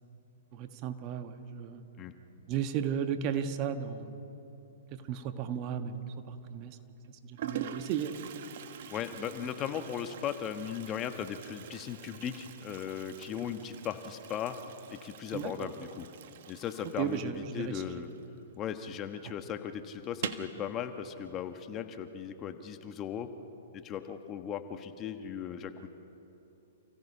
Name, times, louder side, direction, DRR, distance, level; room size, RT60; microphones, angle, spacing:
voice 1, 0.5-1.8 2.5-4.2 4.9-6.8 7.1-8.2 15.3-15.7 17.0-18.0, right 8 dB, 35° right, 8 dB, 1.4 m, -35 dB
Toilet flush, 5.9-6.3 7.0-7.1 7.4-18.7 18.9-19.0 19.3-19.4 20.1-20.6, right 9 dB, 55° right, 1.3 m, -45 dB
voice 2, 8.9-14.6 14.9-16.1 16.5-18.1 18.6-23.3 23.7-25.9, left 8 dB, 25° left, 8 dB, 1.2 m, -37 dB
29.0 x 16.5 x 5.6 m, 2.9 s
hypercardioid pair, 130°, 0 cm